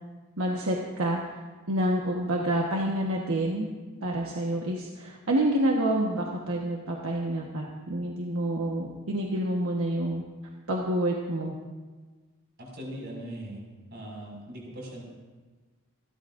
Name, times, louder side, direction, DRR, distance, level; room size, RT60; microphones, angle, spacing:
voice 1, 0.4-1.2 1.7-3.7 4.0-10.2 10.7-11.5, right 1 dB, 80° right, -1 dB, 1.3 m, -28 dB
voice 2, 12.6-13.6 13.9-15.0, right 1 dB, 50° right, -3 dB, 5.8 m, -40 dB
27.0 x 12.5 x 2.6 m, 1.3 s
head